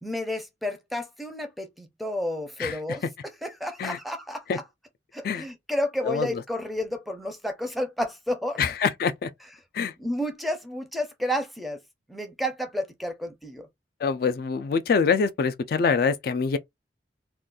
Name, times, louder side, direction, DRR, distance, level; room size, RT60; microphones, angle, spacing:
voice 1, 0.0-3.0 3.4-4.6 5.1-8.6 10.0-11.8 12.1-13.7, left 1 dB, ahead, 0.5 m, -31 dB
voice 2, 6.0-6.4 8.6-9.3 9.7-9.9 14.0-16.6, left 5 dB, 55° left, 0.3 m, -25 dB
2.4 x 2.3 x 3.7 m
head